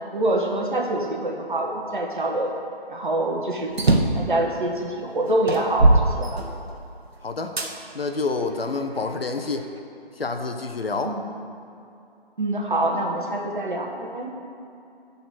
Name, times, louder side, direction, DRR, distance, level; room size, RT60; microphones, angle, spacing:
voice 1, 0.1-2.5 2.9-3.8 4.1-6.4 11.0-11.2 12.4-14.3, right 1 dB, 55° right, 0 dB, 1.4 m, -25 dB
sound 1, 3.7-4.3 4.9-5.0 5.5-6.9 7.6-7.7 8.4-9.5, right 2 dB, 80° right, 1.2 m, -21 dB
voice 2, 7.2-7.6 7.9-9.7 10.2-11.2, left 3 dB, 70° left, 6 dB, 1.0 m, -28 dB
11.5 x 4.1 x 7.8 m, 2.6 s
figure-of-eight pair, 175°, 31 cm